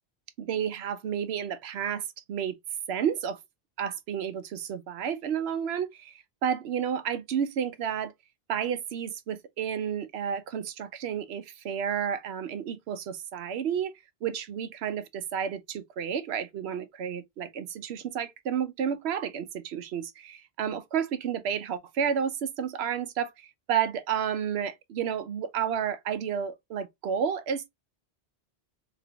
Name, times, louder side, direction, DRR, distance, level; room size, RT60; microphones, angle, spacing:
voice 1, 0.4-2.6 2.9-3.4 3.8-8.1 8.5-13.9 14.2-27.7, right 8 dB, 90° right, 0.9 m, -31 dB
3.3 x 2.9 x 2.2 m
omnidirectional pair, 1.1 m